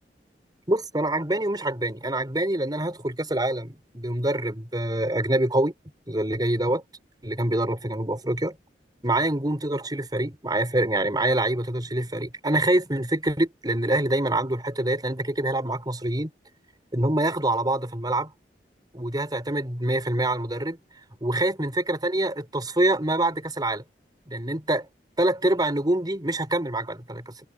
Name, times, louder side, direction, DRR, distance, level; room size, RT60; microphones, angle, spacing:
voice 1, 0.7-5.7 6.1-6.8 7.2-8.6 9.0-16.3 16.9-18.3 18.9-20.8 21.2-23.8 24.3-24.9 25.2-27.5, right 1 dB, 25° right, 4.8 m, -25 dB
head